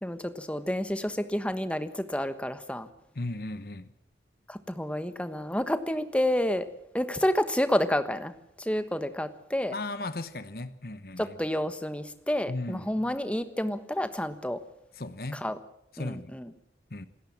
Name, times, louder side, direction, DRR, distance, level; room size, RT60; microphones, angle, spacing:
voice 1, 0.0-2.9 4.5-6.7 6.9-8.3 8.6-9.7 11.2-14.6 15.3-15.6 16.0-16.5, left 1 dB, 5° left, 1.3 m, -29 dB
voice 2, 3.1-3.9 9.7-11.4 12.5-12.9 14.9-15.5 15.9-16.3 16.9-17.1, left 2 dB, 55° left, 1.0 m, -36 dB
27.5 x 14.0 x 7.3 m
head